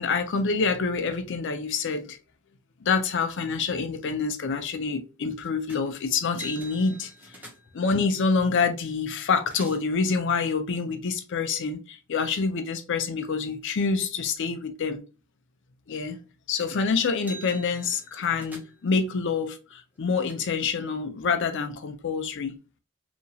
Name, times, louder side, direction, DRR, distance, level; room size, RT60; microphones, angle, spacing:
voice 1, 0.0-2.2 2.8-7.1 7.7-15.0 15.9-16.2 16.5-22.6, left 5 dB, 55° left, 0.5 m, -27 dB
sound 1, 5.7-5.9 6.2-7.9 8.9-9.0 9.2-10.0 16.6-16.8 17.1-18.9 19.7-20.3, right 2 dB, 10° right, 0.6 m, -45 dB
2.9 x 2.7 x 2.3 m
head